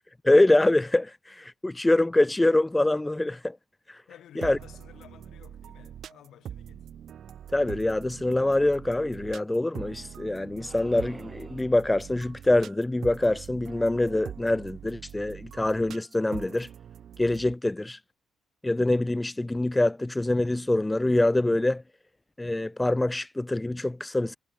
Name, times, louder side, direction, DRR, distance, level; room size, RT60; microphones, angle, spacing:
voice 1, 0.2-3.6 3.9-4.0 4.4-4.6 7.5-16.7 17.2-18.0 18.6-21.8 22.4-24.4, left 2 dB, 15° left, 0.3 m, -24 dB
voice 2, 4.1-6.9, left 11 dB, 70° left, 4.8 m, -51 dB
sound 1, 4.4-17.5, right 9 dB, 60° right, 0.7 m, -43 dB
sound 2, 10.6-11.9, right 4 dB, 35° right, 3.3 m, -52 dB
supercardioid pair, 60°, 0 cm